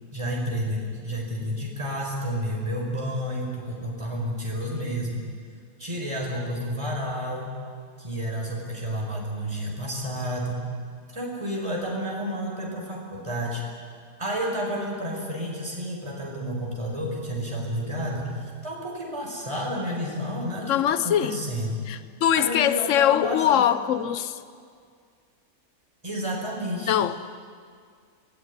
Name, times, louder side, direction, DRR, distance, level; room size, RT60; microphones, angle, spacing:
voice 1, 0.1-5.2 5.8-7.5 8.0-10.6 11.1-13.6 14.2-21.8 22.4-23.6 26.0-27.0, equal, 20° right, -2 dB, 5.3 m, -30 dB
voice 2, 20.7-21.4 21.9-24.4 26.9-27.3, left 10 dB, 60° left, 13 dB, 1.2 m, -22 dB
27.0 x 20.0 x 9.8 m, 2.1 s
omnidirectional pair, 1.5 m